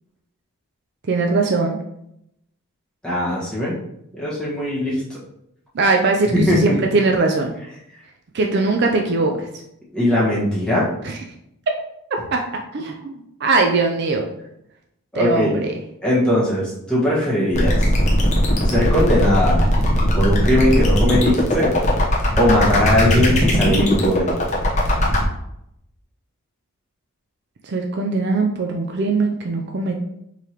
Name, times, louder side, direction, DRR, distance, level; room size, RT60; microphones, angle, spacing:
voice 1, 1.1-1.8 5.7-7.5 8.3-9.5 11.0-11.2 12.3-12.4 12.7-13.1 13.4-14.2 15.1-15.7 27.6-30.0, right 3 dB, 50° right, 2 dB, 0.4 m, -20 dB
voice 2, 3.0-3.8 4.2-5.0 6.3-6.8 9.9-10.9 15.1-15.5 16.0-17.9 18.7-19.6 20.1-21.7 22.4-24.3, left 1 dB, 5° left, -8 dB, 1.4 m, -19 dB
sound 1, 17.5-25.2, equal, 30° left, 0.9 m, -18 dB
4.7 x 3.3 x 2.9 m, 0.78 s
head